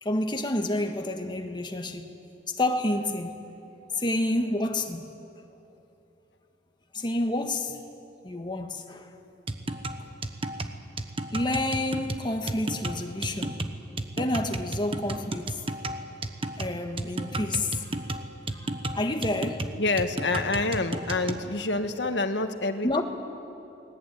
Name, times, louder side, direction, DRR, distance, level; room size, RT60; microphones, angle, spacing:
voice 1, 0.0-2.2 2.5-3.5 4.0-5.1 6.9-7.8 8.2-9.2 11.3-13.6 14.2-15.6 16.6-17.9 18.6-18.7 18.9-19.7 22.8-23.0, left 1 dB, 25° left, 1.6 m, -29 dB
sound 1, 9.5-21.5, right 2 dB, 30° right, 1.2 m, -33 dB
voice 2, 19.8-23.0, left 3 dB, 75° left, 1.6 m, -27 dB
29.5 x 20.0 x 9.3 m
head